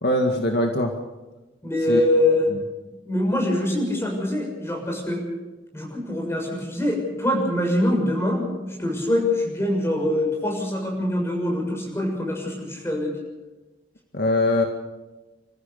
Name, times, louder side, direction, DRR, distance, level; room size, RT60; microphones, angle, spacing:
voice 1, 0.0-0.9 1.9-2.0 14.1-14.6, left 1 dB, 60° left, 3 dB, 2.0 m, -21 dB
voice 2, 1.6-2.5 2.8-5.2 5.7-13.1, left 1 dB, 15° left, 0 dB, 6.9 m, -24 dB
29.0 x 14.5 x 6.8 m, 1.1 s
head